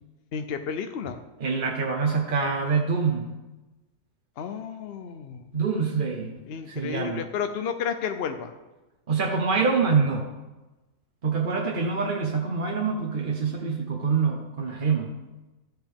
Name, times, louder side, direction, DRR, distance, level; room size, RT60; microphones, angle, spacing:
voice 1, 0.3-1.2 4.4-5.5 6.5-8.5, left 7 dB, 65° left, 7 dB, 0.6 m, -32 dB
voice 2, 1.4-3.3 5.5-6.3 6.7-7.2 9.1-10.2 11.2-15.1, right 5 dB, 40° right, 1 dB, 0.8 m, -25 dB
12.5 x 7.9 x 3.5 m, 1.1 s
omnidirectional pair, 1.7 m